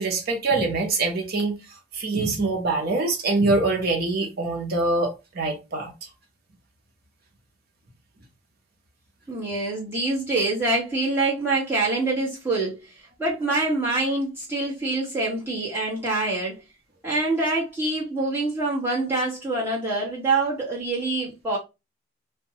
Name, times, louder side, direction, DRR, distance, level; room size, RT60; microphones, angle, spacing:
voice 1, 0.0-1.6 1.9-5.9, right 3 dB, 50° right, 0.7 m, -24 dB
voice 2, 9.3-16.6 17.0-21.6, right 2 dB, 10° right, 1.2 m, -25 dB
2.6 x 2.2 x 2.8 m
head